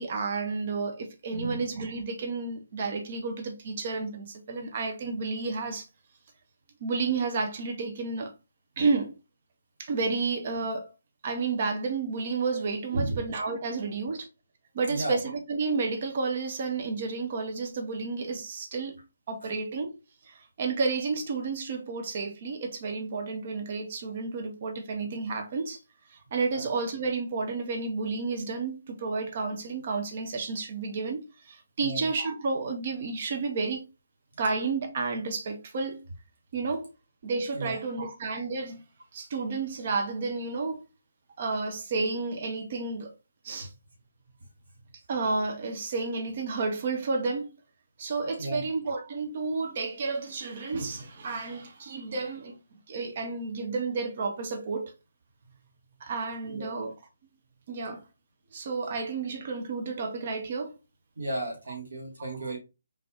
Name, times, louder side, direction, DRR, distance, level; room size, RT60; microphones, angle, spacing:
voice 1, 0.0-5.8 6.8-8.3 8.8-9.1 9.8-10.9 11.2-14.3 14.7-19.0 19.3-20.0 20.2-25.8 26.1-33.8 34.4-36.0 36.5-36.9 37.2-38.8 39.1-40.8 41.4-43.1 43.4-43.7 45.1-47.5 48.0-52.6 52.9-54.9 56.0-56.9 57.7-58.0 58.5-60.7 62.2-62.5, right 4 dB, 40° right, 0.8 m, -31 dB
voice 2, 1.3-1.7 12.9-13.2 14.9-15.2 26.5-26.6 31.8-32.1 37.5-37.8 48.4-48.6 56.5-56.7 61.2-62.6, right 2 dB, 60° right, 1.8 m, -33 dB
3.9 x 3.5 x 2.8 m
figure-of-eight pair, 140°, 0 cm